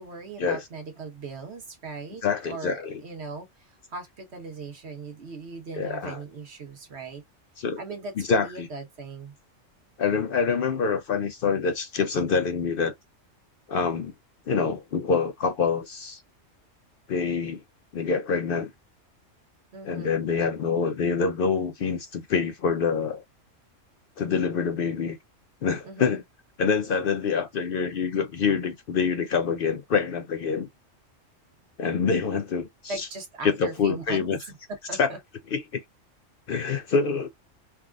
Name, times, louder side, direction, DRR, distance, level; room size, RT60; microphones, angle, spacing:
voice 1, 0.0-7.2 7.8-9.3 19.7-20.2 25.8-26.2 32.9-34.6 34.9-35.2, right 3 dB, 60° right, 1.4 m, -39 dB
voice 2, 2.2-3.0 5.7-6.2 7.6-7.8 8.2-8.7 10.0-12.9 13.7-14.1 14.5-16.2 17.1-17.6 17.9-18.7 19.8-23.2 24.2-25.2 25.6-26.2 26.6-30.7 31.8-33.1 33.4-34.4 35.0-35.1 35.5-35.8 36.5-37.3, left 5 dB, 60° left, 0.6 m, -26 dB
3.5 x 2.3 x 2.4 m
omnidirectional pair, 1.3 m